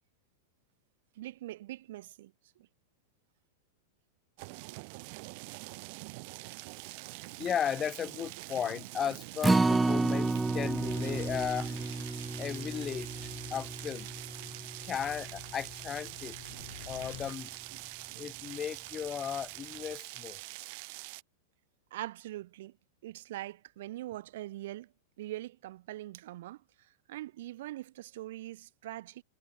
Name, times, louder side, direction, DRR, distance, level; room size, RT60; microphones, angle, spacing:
voice 1, 1.2-2.7 4.7-4.8 21.9-22.8 23.0-24.9 25.2-29.2, right 15 dB, 65° right, 4.0 m, -43 dB
sound 1, 4.4-21.2, right 31 dB, 50° right, 1.0 m, -45 dB
voice 2, 7.4-12.0 12.4-14.1 14.8-16.4 16.9-17.6 18.1-20.4, left 8 dB, 20° left, 0.7 m, -36 dB
Acoustic guitar, 9.4-15.7 16.1-16.2 16.6-16.7, right 3 dB, 5° right, 0.3 m, -31 dB
sound 2, 10.1-17.4, left 12 dB, 75° left, 6.8 m, -50 dB
supercardioid pair, 145°, 0 cm